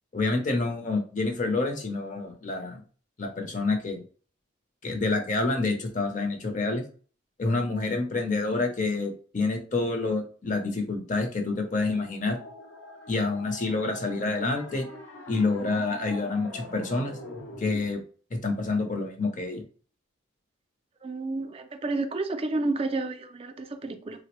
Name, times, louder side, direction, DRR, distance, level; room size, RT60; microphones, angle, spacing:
voice 1, 0.1-2.8 3.2-4.0 4.8-6.8 7.4-12.4 13.1-14.9 15.3-17.1 17.6-18.0 18.4-19.6, left 3 dB, 40° left, 0.6 m, -28 dB
sound 1, 11.4-17.9, left 2 dB, 80° left, 0.8 m, -43 dB
voice 2, 21.0-24.2, right 2 dB, 30° right, 0.3 m, -30 dB
3.5 x 2.0 x 3.0 m
head